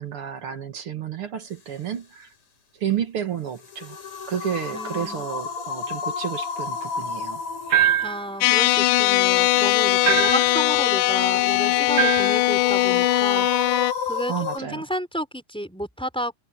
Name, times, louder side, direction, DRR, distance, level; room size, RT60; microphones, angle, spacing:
voice 1, 0.0-2.3 2.7-4.0 4.3-7.4 14.3-14.9, right 9 dB, 45° right, 2.4 m, -31 dB
sound 1, 3.5-14.6, left 4 dB, 55° left, 5.5 m, -33 dB
voice 2, 4.7-5.3 8.0-13.8 14.1-16.4, equal, ahead, 4.0 m, -31 dB
sound 2, 7.7-8.3 10.0-10.5 12.0-12.4, right 11 dB, 70° right, 2.6 m, -22 dB
sound 3, 8.4-13.9, left 19 dB, 80° left, 2.1 m, -20 dB
omnidirectional pair, 3.9 m